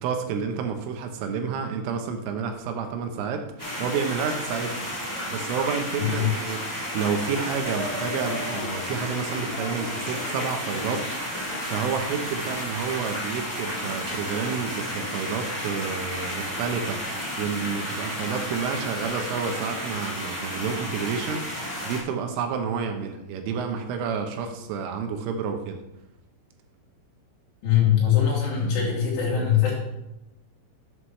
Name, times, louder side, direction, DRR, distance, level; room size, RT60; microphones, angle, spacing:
voice 1, 0.0-4.9 5.3-11.1 11.6-25.8, right 6 dB, 80° right, 5 dB, 3.4 m, -30 dB
sound 1, 3.6-22.0, equal, 25° left, 0.4 m, -32 dB
voice 2, 6.0-6.3 27.6-29.7, left 9 dB, 70° left, -5 dB, 5.0 m, -22 dB
sound 2, 6.4-11.7, left 10 dB, 85° left, 3.4 m, -41 dB
11.0 x 7.8 x 3.2 m, 0.89 s
omnidirectional pair, 5.8 m